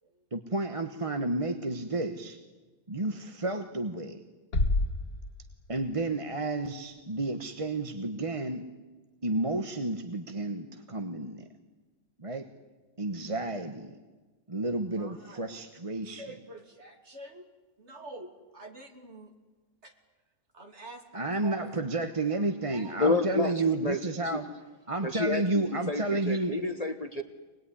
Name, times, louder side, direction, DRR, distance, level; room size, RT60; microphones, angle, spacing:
voice 1, 0.3-2.4 2.9-4.2 5.7-8.7 9.2-11.5 12.2-12.5 13.0-13.9 14.5-16.2 21.1-24.5 24.9-26.5, right 2 dB, 25° right, 7 dB, 1.2 m, -31 dB
sound 1, 4.5-6.2, left 2 dB, 85° left, 2.2 m, -29 dB
voice 2, 14.9-15.6 16.0-17.5 17.8-19.3 19.8-19.9 20.5-22.4 22.7-22.9 23.4-23.7, right 2 dB, 50° right, 4 dB, 3.2 m, -47 dB
voice 3, 23.0-24.4 25.0-27.2, left 3 dB, 30° left, 8 dB, 1.2 m, -30 dB
25.0 x 20.0 x 9.9 m, 1.3 s
omnidirectional pair, 1.5 m